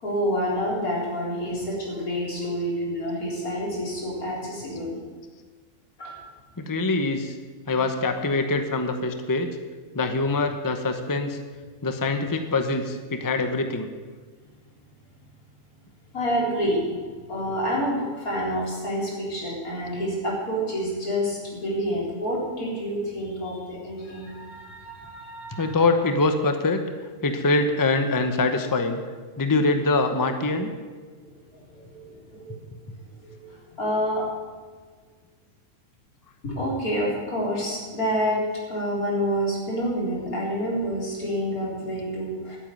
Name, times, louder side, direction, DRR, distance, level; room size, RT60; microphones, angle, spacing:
voice 1, 0.0-5.0 6.0-6.3 16.1-16.9 17.3-25.8 31.2-32.6 33.2-34.3 36.4-38.4 38.7-42.6, equal, 85° left, -4 dB, 4.7 m, -28 dB
voice 2, 6.6-7.4 7.7-9.5 9.9-11.4 11.8-13.9 25.5-26.8 27.2-29.0 29.4-30.7, left 3 dB, 15° left, 7 dB, 0.9 m, -24 dB
11.5 x 9.2 x 9.3 m, 1.5 s
omnidirectional pair, 1.5 m